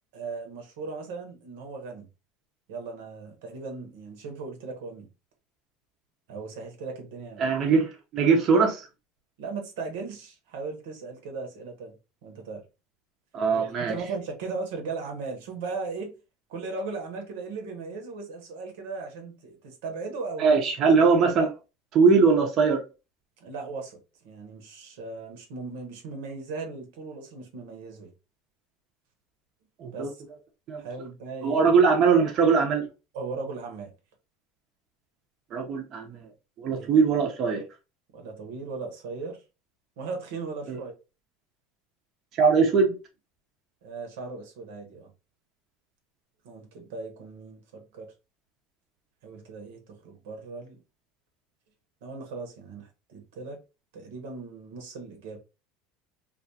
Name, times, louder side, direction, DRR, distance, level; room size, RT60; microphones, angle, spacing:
voice 1, 0.1-2.1 2.7-5.1 6.3-7.5 9.4-12.0 12.2-12.6 13.5-16.1 16.5-20.5 23.4-24.0 24.2-28.1 29.9-30.2 30.8-31.7 33.1-33.9 36.7-36.9 38.1-39.4 40.0-40.9 43.8-45.1 46.4-48.1 49.2-50.8 52.0-53.6 53.9-55.4, right 4 dB, 80° right, 0.8 m, -37 dB
voice 2, 7.4-8.9 13.3-13.9 20.4-21.5 21.9-22.8 29.8-30.1 30.7-30.8 31.4-32.8 35.5-36.2 36.6-37.6 40.7-40.8 42.4-42.9, right 5 dB, 45° right, 0.6 m, -21 dB
2.3 x 2.3 x 2.7 m
supercardioid pair, 110°, 0 cm